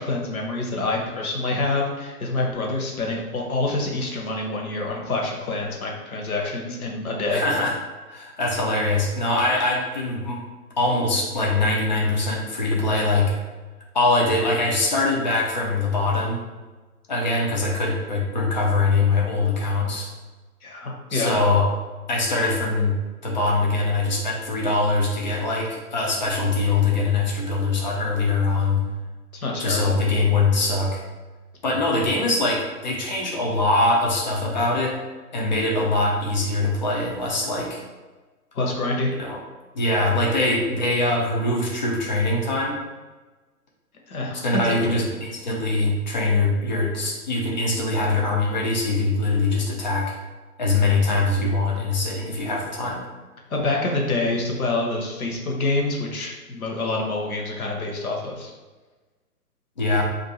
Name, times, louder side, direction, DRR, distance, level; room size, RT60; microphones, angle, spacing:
voice 1, 0.0-7.4 20.6-21.3 29.4-30.0 38.5-39.1 44.1-45.0 50.8-50.9 53.5-58.5, left 2 dB, 65° left, 0 dB, 1.0 m, -26 dB
voice 2, 7.3-7.8 8.1-10.4 10.8-13.3 13.9-16.4 17.1-20.1 21.1-21.7 22.1-23.0 23.2-28.8 29.6-31.0 31.6-35.0 35.3-37.8 39.2-39.4 39.7-42.8 44.4-50.1 50.6-53.0 59.8-60.0, left 2 dB, 30° left, -2 dB, 0.5 m, -22 dB
2.6 x 2.5 x 4.2 m, 1.3 s
figure-of-eight pair, 145°, 47 cm